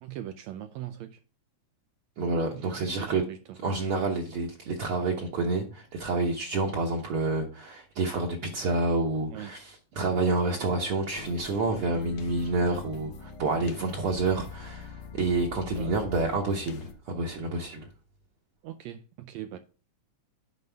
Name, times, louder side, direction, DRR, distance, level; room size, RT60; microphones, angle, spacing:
voice 1, 0.0-1.2 2.5-3.4 9.3-9.5 13.5-13.7 15.8-16.0 18.6-19.6, right 12 dB, 80° right, 1.6 m, -40 dB
voice 2, 2.2-3.2 3.6-17.9, right 3 dB, 60° right, 1.6 m, -28 dB
sound 1, 11.2-16.9, left 5 dB, 80° left, 2.4 m, -43 dB
9.3 x 5.3 x 3.4 m
omnidirectional pair, 3.5 m